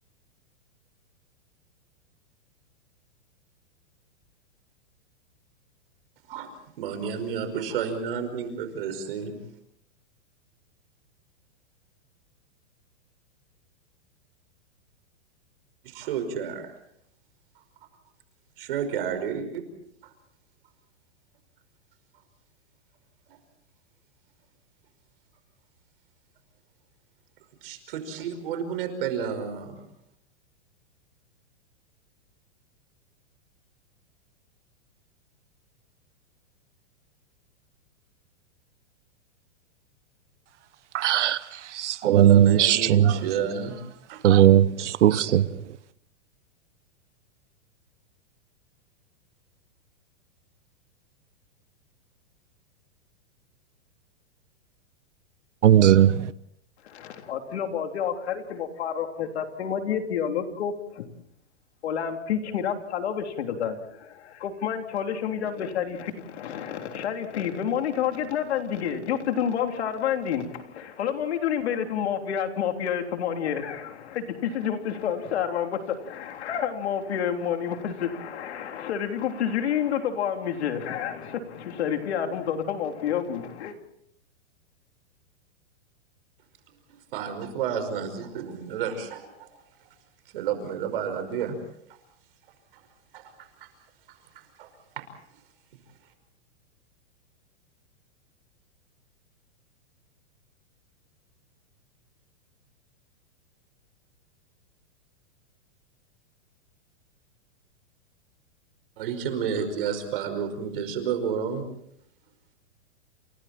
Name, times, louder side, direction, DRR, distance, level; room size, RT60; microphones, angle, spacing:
voice 1, 6.8-9.3 15.8-16.7 18.6-19.6 27.6-29.7 42.0-43.8 44.1-44.2 87.1-89.6 90.3-91.6 93.1-93.7 94.4-94.7 95.0-95.1 109.0-111.6, right 7 dB, 50° right, 5.4 m, -31 dB
voice 2, 40.9-43.2 44.2-45.6 55.6-56.3, right 11 dB, 80° right, 1.1 m, -18 dB
voice 3, 56.8-61.1 61.8-83.7, left 8 dB, 65° left, 3.5 m, -29 dB
29.0 x 29.0 x 4.4 m
supercardioid pair, 170°, 35 cm